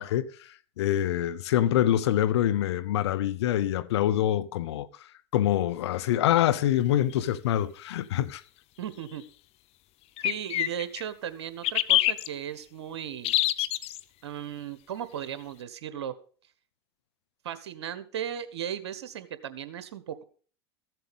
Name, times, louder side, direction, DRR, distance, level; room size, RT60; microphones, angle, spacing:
voice 1, 0.0-4.9 5.3-8.4, left 12 dB, 75° left, 0.8 m, -25 dB
sound 1, 7.1-7.2 10.2-11.0 11.6-12.3 13.2-14.0, left 15 dB, 45° left, 0.8 m, -25 dB
voice 2, 8.8-9.2 10.2-13.3 14.2-16.1 17.4-20.2, right 9 dB, 80° right, 1.4 m, -36 dB
14.5 x 7.8 x 5.2 m
hypercardioid pair, 100°, 14 cm